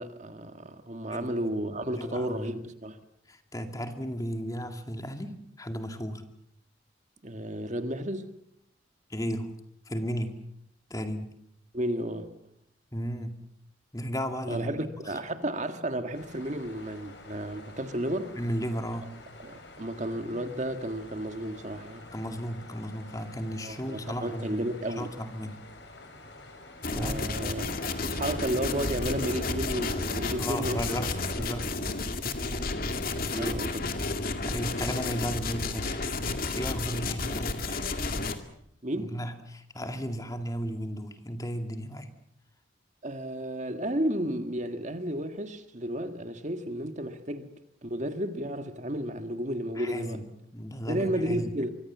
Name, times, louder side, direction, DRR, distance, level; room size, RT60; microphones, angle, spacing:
voice 1, 0.0-3.0 7.2-8.3 11.7-12.3 14.5-18.3 19.4-22.1 23.6-25.1 26.9-27.7 28.1-31.0 32.4-32.6 33.2-33.8 37.7-37.8 38.8-39.1 43.0-47.5 47.8-50.2 50.9-51.8, right 1 dB, 40° right, 1.7 m, -32 dB
voice 2, 1.1-1.5 1.9-2.7 3.3-6.3 9.1-9.5 9.9-10.4 10.9-11.3 12.9-13.4 13.9-14.7 15.0-15.1 18.4-19.1 22.1-24.6 24.9-25.6 26.9-27.3 30.3-31.7 33.2-33.6 34.4-36.0 36.6-37.8 39.0-42.1 49.8-51.5, equal, 20° left, 2.2 m, -34 dB
sound 1, 16.1-31.5, left 2 dB, 65° left, 6.5 m, -49 dB
sound 2, 26.8-38.4, left 3 dB, 50° left, 2.3 m, -32 dB
24.5 x 24.5 x 7.3 m
head